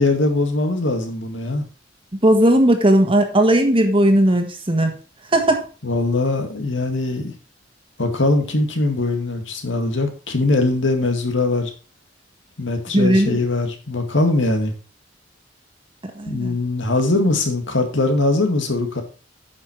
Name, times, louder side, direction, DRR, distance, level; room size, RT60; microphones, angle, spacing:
voice 1, 0.0-1.6 5.8-7.3 8.0-11.7 12.6-14.7 16.3-19.0, left 2 dB, 85° left, 2.0 m, -21 dB
voice 2, 2.2-4.9 5.3-5.6 12.9-13.4 16.1-16.6, right 1 dB, 30° right, 1.5 m, -16 dB
9.5 x 5.8 x 4.5 m
head